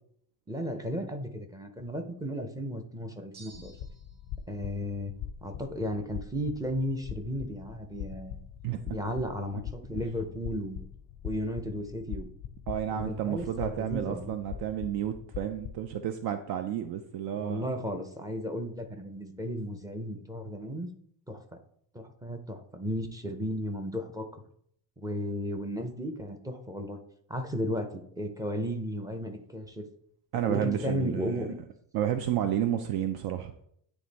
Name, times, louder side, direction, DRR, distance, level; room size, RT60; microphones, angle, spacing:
voice 1, 0.5-3.7 4.5-5.1 5.4-8.4 8.9-10.9 11.2-12.3 12.9-14.4 17.4-20.9 21.3-21.6 21.9-24.4 25.0-27.0 27.3-29.8 30.4-31.6, equal, 10° right, 5 dB, 0.6 m, -34 dB
sound 1, 3.3-4.3, right 4 dB, 85° right, 1.6 m, -54 dB
sound 2, 3.5-16.0, left 9 dB, 50° left, 0.4 m, -42 dB
voice 2, 12.7-17.7 30.3-31.5 31.9-33.5, right 10 dB, 65° right, 8 dB, 0.6 m, -31 dB
9.3 x 3.4 x 4.0 m, 0.67 s
cardioid pair, 155°, 40 cm